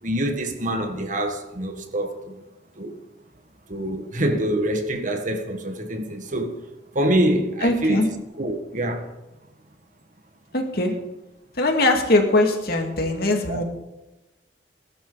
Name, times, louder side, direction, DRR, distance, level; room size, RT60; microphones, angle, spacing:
voice 1, 0.0-2.4 2.8-2.9 3.7-6.6 6.9-8.0 8.4-9.1 13.5-13.6, right 1 dB, 45° right, 1.8 m, -25 dB
voice 2, 7.6-8.1 10.5-11.0 11.5-13.6, left 2 dB, 60° left, 2.4 m, -21 dB
20.5 x 11.5 x 4.1 m
head